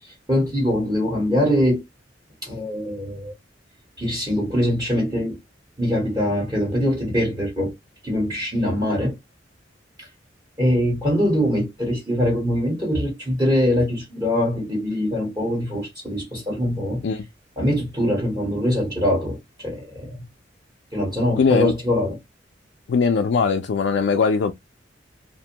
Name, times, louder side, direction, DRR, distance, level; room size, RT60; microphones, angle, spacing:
voice 1, 0.3-1.8 2.4-3.3 4.0-5.4 5.8-7.7 8.0-9.1 10.0-10.1 10.6-17.1 17.6-20.2 20.9-22.2, equal, 20° right, 1.0 m, -23 dB
voice 2, 21.4-21.7 22.9-24.5, left 5 dB, 65° left, 0.3 m, -20 dB
2.5 x 2.1 x 2.8 m
head